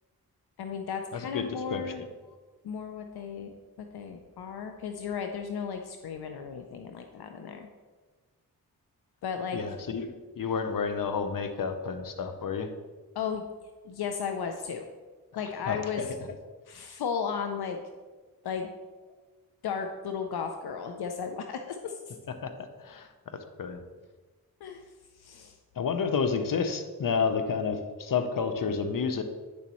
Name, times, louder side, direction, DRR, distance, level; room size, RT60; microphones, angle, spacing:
voice 1, 0.6-2.1 2.6-3.5 3.8-7.7 9.2-9.6 13.1-13.4 13.8-14.9 15.4-16.0 16.7-17.8 18.4-18.7 19.6-22.2 24.6-24.8 25.2-25.5, left 6 dB, 80° left, 5 dB, 0.7 m, -35 dB
voice 2, 1.1-2.1 9.5-12.7 15.7-16.1 22.4-22.5 22.8-23.8 25.8-29.2, left 5 dB, 60° left, 8 dB, 0.9 m, -30 dB
9.5 x 7.0 x 3.1 m, 1.4 s
cardioid pair, 55°, 38 cm